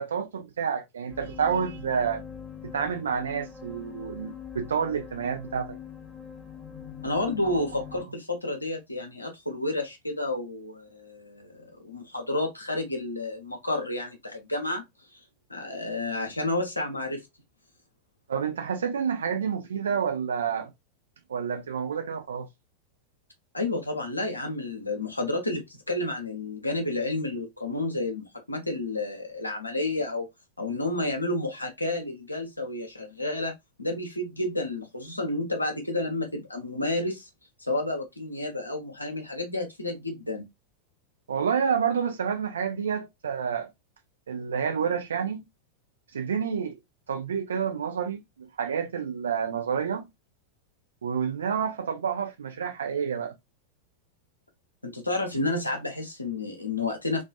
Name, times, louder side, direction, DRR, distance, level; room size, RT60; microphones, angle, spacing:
voice 1, 0.0-2.2 2.6-5.8 18.3-20.7 21.3-22.5 41.3-43.7 44.3-45.4 46.1-46.8 47.1-50.1 51.0-53.3, right 7 dB, 65° right, 0.5 m, -29 dB
sound 1, 1.1-8.0, left 7 dB, 5° right, 1.0 m, -43 dB
voice 2, 7.0-14.8 15.1-15.2 15.5-17.3 23.5-30.3 30.6-33.5 33.8-37.3 37.6-40.5 54.8-57.2, left 2 dB, 85° left, 0.7 m, -30 dB
2.4 x 2.3 x 2.3 m
figure-of-eight pair, 90°, 0 cm